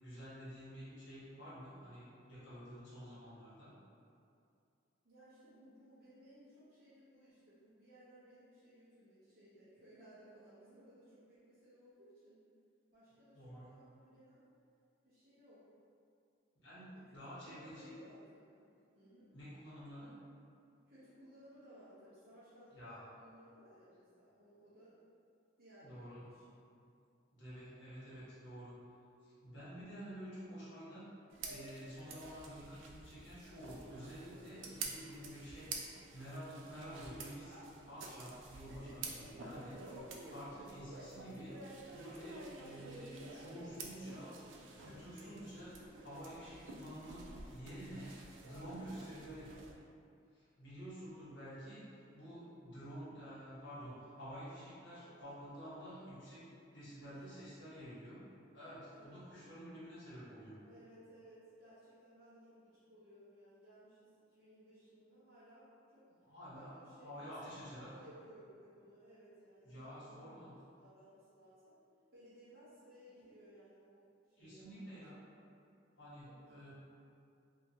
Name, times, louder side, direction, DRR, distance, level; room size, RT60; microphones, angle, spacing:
voice 1, 0.0-3.7 13.3-13.7 16.6-17.9 19.3-20.1 22.7-23.0 25.8-26.2 26.8-26.9 27.3-28.7 29.2-31.1 31.5-35.7 36.1-37.6 37.9-39.8 40.3-41.6 41.9-49.4 50.3-51.8 52.1-56.5 56.7-58.2 58.5-60.6 66.2-66.7 67.0-67.9 69.6-70.5 74.4-75.2 76.0-76.7, equal, 80° left, -11 dB, 1.2 m, -50 dB
voice 2, 5.0-12.4 12.9-14.4 15.0-15.6 16.9-18.6 18.9-19.3 20.9-25.0 25.6-26.6 27.6-27.9 39.7-40.0 48.3-49.2 55.0-55.2 57.1-57.2 58.9-59.2 60.6-66.1 66.5-71.8 72.1-74.8 75.1-75.2 76.3-76.7, right 1 dB, 55° right, -14 dB, 0.7 m, -60 dB
sound 1, 31.3-49.7, right 3 dB, 85° right, 0.4 m, -50 dB
2.8 x 2.4 x 2.7 m, 2.5 s
head